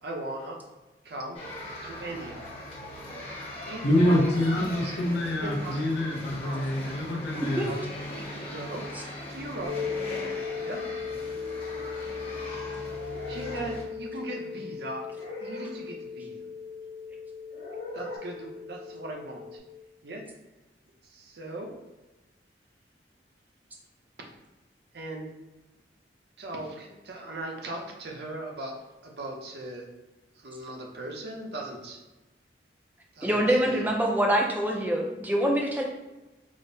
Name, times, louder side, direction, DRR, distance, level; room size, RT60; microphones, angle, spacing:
voice 1, 0.0-0.6 1.0-1.4 1.8-2.4 3.6-4.2 4.8-4.9 5.4-5.8 6.4-6.8 7.6-7.8 8.3-8.9 9.3-9.8 10.6-10.9 13.3-15.1 15.4-16.3 17.9-19.6 20.0-20.2 21.1-21.8 24.9-25.3 26.4-29.9 30.4-32.0 33.2-33.8, right 1 dB, 65° right, 1 dB, 0.6 m, -38 dB
sound 1, 1.3-13.8, left 1 dB, 30° left, 0.9 m, -39 dB
voice 2, 3.8-7.7, left 1 dB, 85° left, -1 dB, 0.6 m, -26 dB
sound 2, 9.7-19.6, left 6 dB, 90° right, 1.5 m, -37 dB
sound 3, 13.1-13.7 15.1-15.7 17.5-18.2, left 1 dB, 50° left, 1.3 m, -40 dB
voice 3, 33.2-35.8, right 1 dB, 10° right, 0 dB, 0.4 m, -25 dB
5.0 x 2.1 x 2.7 m, 1.1 s
head